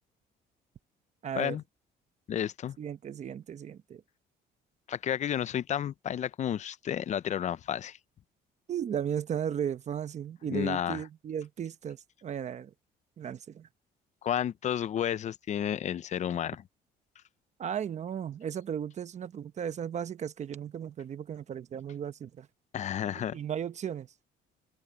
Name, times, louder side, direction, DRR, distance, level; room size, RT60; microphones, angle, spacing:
voice 1, 1.2-1.6 2.8-4.0 8.7-12.7 13.2-13.7 17.6-22.5 23.1-24.1, right 8 dB, 45° right, 1.0 m, -35 dB
voice 2, 2.3-2.8 4.9-8.0 10.5-11.0 14.2-16.6 22.7-23.4, left 10 dB, 45° left, 0.6 m, -31 dB
cardioid pair, 110°, 17 cm